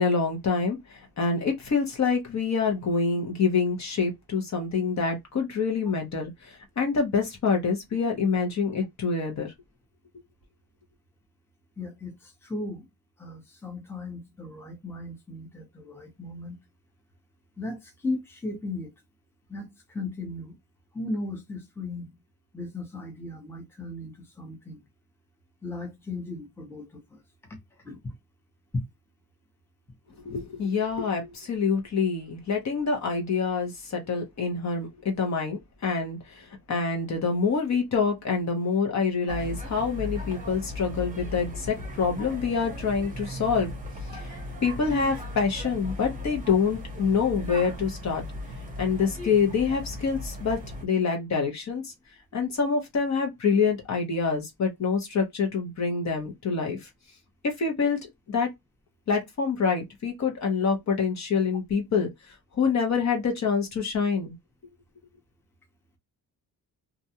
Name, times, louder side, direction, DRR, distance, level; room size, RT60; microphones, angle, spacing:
voice 1, 0.0-9.5 30.2-43.7 44.1-48.2 48.8-51.9 52.3-56.9 57.4-58.5 59.1-64.3, left 5 dB, 50° left, 0.9 m, -26 dB
voice 2, 11.8-12.1 12.4-12.8 13.2-16.6 17.6-18.9 19.5-20.5 20.9-22.1 22.5-24.8 25.6-27.2 27.8-28.0 28.7-28.8, left 2 dB, 5° left, 0.8 m, -36 dB
sound 1, 39.3-50.9, left 1 dB, 20° right, 0.9 m, -37 dB
2.5 x 2.2 x 2.8 m
wide cardioid pair, 130°, 36 cm